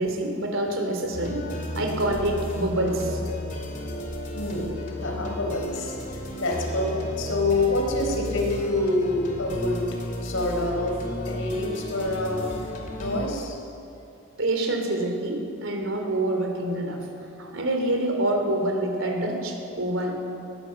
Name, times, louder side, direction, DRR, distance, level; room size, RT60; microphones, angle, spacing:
voice 1, 0.0-1.4 1.7-3.2 14.4-17.0 17.4-20.2, right 1 dB, 75° right, 3 dB, 3.3 m, -26 dB
sound 1, 1.1-13.3, equal, 40° left, 2.7 m, -34 dB
voice 2, 4.4-6.9 7.2-9.8 10.2-11.0 11.3-12.7 13.0-13.5, left 2 dB, 80° left, 1 dB, 4.3 m, -27 dB
20.5 x 17.0 x 7.7 m, 2.7 s
head